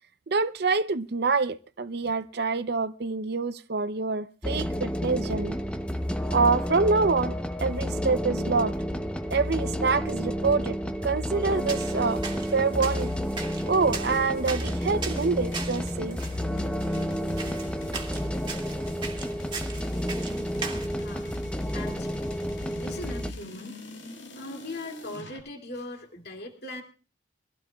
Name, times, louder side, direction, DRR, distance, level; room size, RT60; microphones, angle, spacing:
voice 1, 0.3-5.6 6.3-7.3 7.6-8.8 9.3-10.8 11.0-12.2 12.5-13.1 13.7-16.2, right 4 dB, 55° right, 0.6 m, -26 dB
sound 1, 4.4-23.3, equal, 5° left, 0.7 m, -30 dB
sound 2, 11.4-20.9, right 4 dB, 25° right, 2.0 m, -39 dB
sound 3, 14.1-25.4, left 2 dB, 85° left, 6.5 m, -44 dB
voice 2, 20.9-21.3 21.7-22.2 22.6-23.8 24.3-26.8, left 1 dB, 55° left, 2.5 m, -40 dB
24.0 x 16.0 x 2.3 m
head